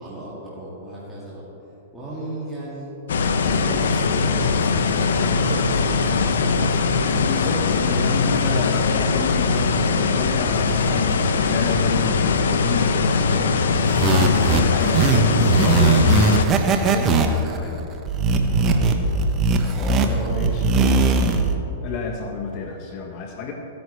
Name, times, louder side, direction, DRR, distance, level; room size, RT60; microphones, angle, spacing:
voice 1, 0.0-1.4 1.9-3.0 3.4-5.9 18.4-19.2 19.6-21.0, equal, 5° right, -9 dB, 2.3 m, -35 dB
sound 1, 3.1-16.5, left 4 dB, 90° left, 0.7 m, -21 dB
voice 2, 7.2-17.9 20.3-20.8 21.8-23.5, left 4 dB, 40° left, 2 dB, 1.1 m, -30 dB
sound 2, 13.9-21.6, right 3 dB, 25° right, 0.8 m, -19 dB
15.0 x 9.5 x 3.4 m, 2.9 s
hypercardioid pair, 140°, 0 cm